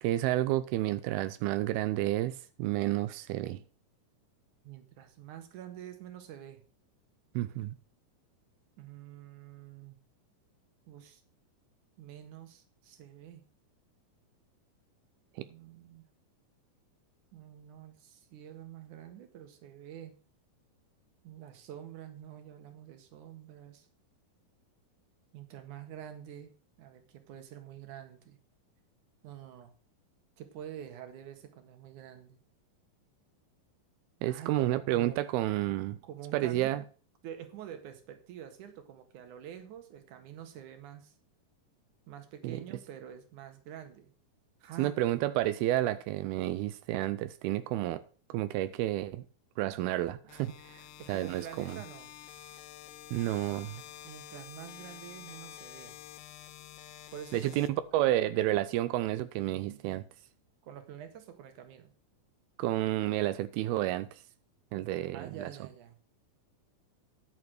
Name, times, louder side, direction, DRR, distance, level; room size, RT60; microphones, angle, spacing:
voice 1, 0.0-3.6 7.3-7.8 15.4-15.5 34.2-36.0 36.3-36.8 42.4-42.6 44.8-48.0 48.3-49.3 49.6-51.8 53.1-53.8 57.3-60.0 62.6-64.2 64.7-65.5, right 14 dB, 85° right, 2.6 m, -30 dB
voice 2, 4.6-6.6 8.8-10.0 10.9-11.2 12.0-13.4 15.4-16.1 17.3-20.2 21.2-23.9 25.3-28.4 29.2-29.7 30.4-32.4 34.3-35.2 36.0-36.8 37.2-41.1 42.1-44.1 44.6-44.9 51.0-52.1 54.0-55.9 57.1-57.6 60.6-61.9 65.1-65.9, right 10 dB, 60° right, 2.9 m, -47 dB
sound 1, 50.3-58.3, left 13 dB, 75° left, 2.1 m, -49 dB
11.0 x 7.4 x 6.4 m
omnidirectional pair, 4.3 m